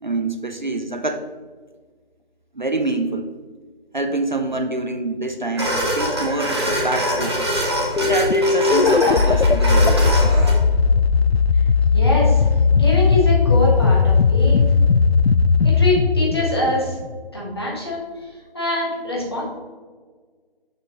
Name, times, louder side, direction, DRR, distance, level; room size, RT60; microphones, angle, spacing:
voice 1, 0.0-1.2 2.5-3.3 3.9-7.3 8.0-10.3, right 2 dB, 50° right, 6 dB, 0.5 m, -25 dB
sound 1, 5.6-10.5, equal, 25° right, 1.3 m, -24 dB
sound 2, 8.0-17.3, left 4 dB, 80° left, 0.5 m, -17 dB
voice 2, 11.9-12.4 12.7-14.7 15.6-17.0 17.3-18.0 18.5-19.4, left 1 dB, 25° left, -4 dB, 1.3 m, -23 dB
6.9 x 6.6 x 2.9 m, 1.5 s
figure-of-eight pair, 165°, 30 cm